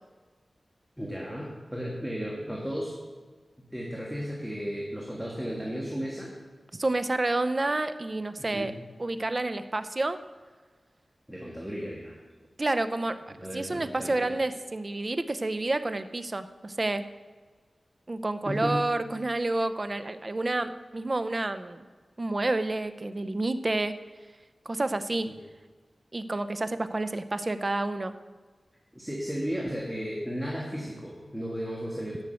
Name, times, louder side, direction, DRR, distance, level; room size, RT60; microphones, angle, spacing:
voice 1, 1.0-3.0 3.6-6.3 8.4-8.8 11.3-12.2 13.3-14.3 18.4-18.9 25.3-25.4 28.9-32.2, equal, 5° right, -3 dB, 1.8 m, -34 dB
voice 2, 6.7-8.7 9.0-10.2 12.6-13.2 13.5-17.0 18.1-21.8 22.2-23.9 24.7-25.3 26.1-28.1, right 2 dB, 35° right, 11 dB, 0.7 m, -29 dB
10.5 x 6.4 x 7.7 m, 1.4 s
wide cardioid pair, 85°, 0 cm